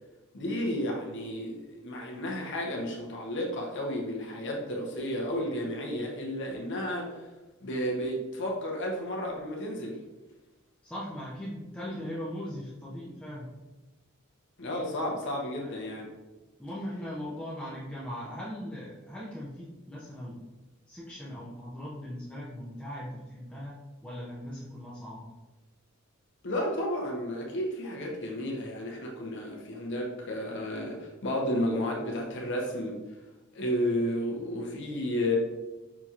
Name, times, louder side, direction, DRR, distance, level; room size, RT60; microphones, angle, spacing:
voice 1, 0.3-7.3 7.6-10.0 14.6-16.1 26.4-33.0 33.5-35.4, left 1 dB, 60° left, -1 dB, 0.8 m, -32 dB
voice 2, 10.8-13.5 15.6-15.8 16.6-20.4 20.9-23.8 24.0-25.3, equal, 5° left, -7 dB, 0.6 m, -39 dB
5.8 x 2.8 x 2.4 m, 1.1 s
head